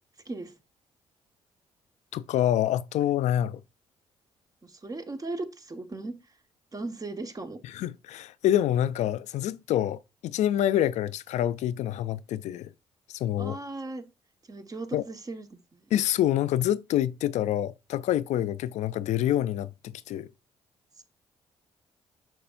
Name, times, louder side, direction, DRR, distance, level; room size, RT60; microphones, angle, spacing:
voice 1, 2.1-3.6 7.7-12.7 13.1-13.6 14.9-15.0 15.9-20.3, left 12 dB, 75° left, 0.4 m, -27 dB
voice 2, 4.6-6.2 6.7-7.6 13.4-14.0 14.5-15.5 15.8-15.9, right 2 dB, 30° right, 1.3 m, -37 dB
6.7 x 6.1 x 2.5 m
supercardioid pair, 60°, 12 cm